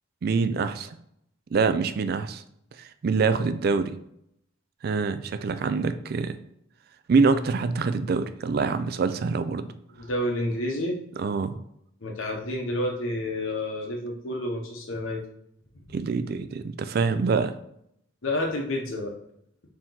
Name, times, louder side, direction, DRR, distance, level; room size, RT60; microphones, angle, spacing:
voice 1, 0.2-1.0 1.5-2.4 2.8-3.9 4.8-6.4 7.1-9.7 11.2-11.5 15.9-17.5, right 4 dB, 50° right, 11 dB, 0.3 m, -25 dB
voice 2, 9.9-11.0 12.0-15.2 18.2-19.1, left 1 dB, 75° left, 0 dB, 0.8 m, -29 dB
4.3 x 2.9 x 3.7 m, 0.74 s
head